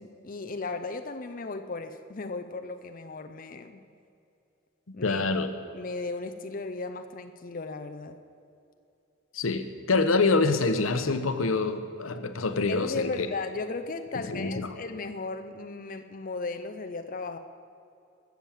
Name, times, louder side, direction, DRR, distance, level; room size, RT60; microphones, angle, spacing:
voice 1, 0.0-3.8 4.9-5.2 5.7-8.2 12.7-17.4, left 3 dB, 45° left, 7 dB, 0.6 m, -36 dB
voice 2, 5.0-5.5 9.3-13.3 14.3-14.7, left 3 dB, 85° left, 9 dB, 0.9 m, -26 dB
20.0 x 7.3 x 7.3 m, 2.6 s
head